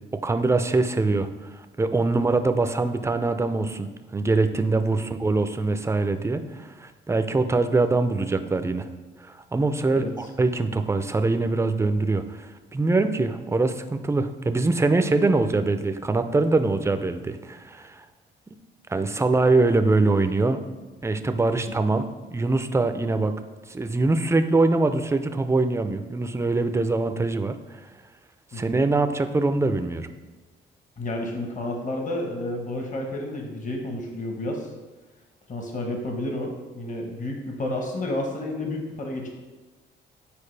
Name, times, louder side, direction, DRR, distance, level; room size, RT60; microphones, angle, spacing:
voice 1, 0.2-1.3 1.8-8.9 9.2-18.0 18.5-18.6 18.9-20.6 21.0-22.1 22.3-23.3 23.7-27.5 28.5-30.1, right 3 dB, 15° right, 8 dB, 0.5 m, -23 dB
voice 2, 9.9-10.3 21.5-21.8 28.5-28.8 31.0-34.7 35.5-39.3, left 1 dB, 40° left, 2 dB, 1.2 m, -31 dB
8.6 x 4.6 x 3.3 m, 1.3 s
cardioid pair, 90°, 20 cm